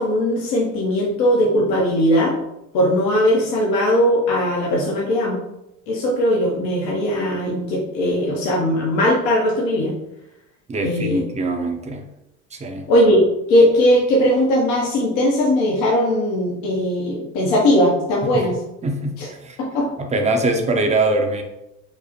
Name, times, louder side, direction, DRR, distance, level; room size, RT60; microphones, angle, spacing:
voice 1, 0.0-2.4 2.7-5.4 5.9-9.9 10.8-11.2 12.9-18.6 19.2-19.3 19.6-19.9, equal, 70° left, -3 dB, 0.9 m, -19 dB
voice 2, 10.7-12.0 12.5-12.9 18.3-18.4 18.8-19.6 20.0-21.4, right 2 dB, 15° right, 4 dB, 0.6 m, -22 dB
5.1 x 2.1 x 2.9 m, 0.88 s
hypercardioid pair, 80°, 40 cm